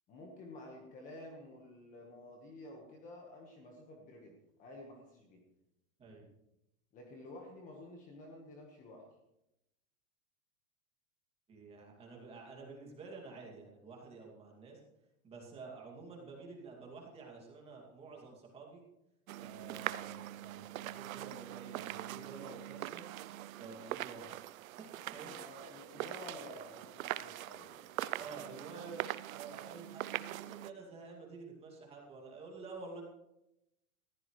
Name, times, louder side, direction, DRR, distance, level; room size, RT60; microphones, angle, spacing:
voice 1, 0.1-5.4 6.9-9.0 25.2-28.1, left 1 dB, 20° left, 1 dB, 1.4 m, -51 dB
voice 2, 11.5-14.8 15.2-18.8 19.4-23.1 23.6-24.3 24.8-25.4 28.2-29.0 29.3-33.0, right 4 dB, 15° right, 0 dB, 2.4 m, -50 dB
sound 1, 19.3-30.7, right 14 dB, 70° right, 0.6 m, -42 dB
20.0 x 15.0 x 3.2 m, 0.87 s
supercardioid pair, 175°, 43 cm